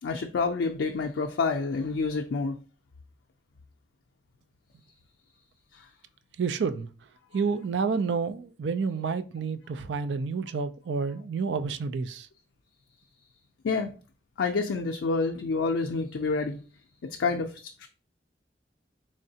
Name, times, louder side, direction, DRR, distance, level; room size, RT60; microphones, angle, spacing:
voice 1, 0.0-2.6 5.7-5.9 13.6-13.9 14.4-16.6 17.0-17.9, left 4 dB, 85° left, 0.4 m, -28 dB
voice 2, 6.4-6.9 7.3-12.3, right 5 dB, 80° right, 0.4 m, -29 dB
3.7 x 3.2 x 2.7 m
head